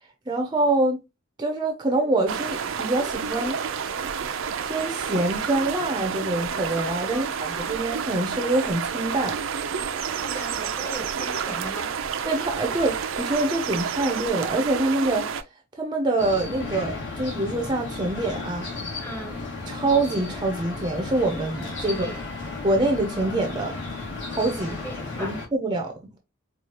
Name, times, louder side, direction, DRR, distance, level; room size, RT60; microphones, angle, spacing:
voice 1, 0.3-1.0 1.4-3.6 4.6-9.4 12.3-15.3 15.8-18.7 19.7-22.1 22.6-23.8 24.3-24.8 25.2-26.2, right 2 dB, 20° right, 0.6 m, -25 dB
sound 1, 2.3-15.4, right 6 dB, 75° right, 0.5 m, -30 dB
voice 2, 10.2-12.0 19.0-19.4 21.9-22.3 24.7-25.4, equal, 10° left, 0.9 m, -38 dB
sound 2, 16.2-25.5, left 3 dB, 65° left, 1.6 m, -34 dB
4.7 x 2.4 x 2.9 m
head